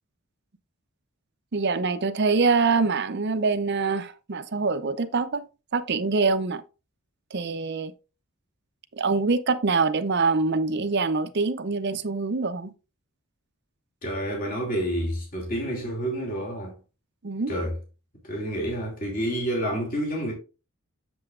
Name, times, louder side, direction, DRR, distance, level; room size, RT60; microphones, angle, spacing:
voice 1, 1.5-5.5 5.7-6.6 7.3-7.9 9.0-12.7 17.2-17.5, right 4 dB, 50° right, 0.6 m, -24 dB
voice 2, 14.0-16.7 17.5-17.8 18.2-20.3, equal, 40° left, 2.6 m, -29 dB
7.9 x 6.9 x 2.4 m
head